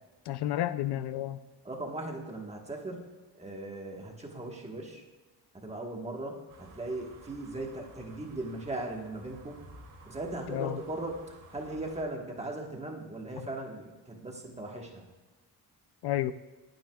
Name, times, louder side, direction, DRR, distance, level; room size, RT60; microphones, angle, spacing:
voice 1, 0.3-1.4 10.5-10.8 16.0-16.3, left 13 dB, 75° left, 13 dB, 0.5 m, -31 dB
voice 2, 1.6-3.1 3.3-5.0 5.6-9.6 10.0-11.1 11.5-15.0, right 2 dB, 15° right, 0 dB, 1.4 m, -38 dB
sound 1, 6.5-12.0, right 2 dB, 50° right, 2.5 m, -53 dB
20.0 x 9.3 x 2.3 m, 1.3 s
wide cardioid pair, 165°, 40 cm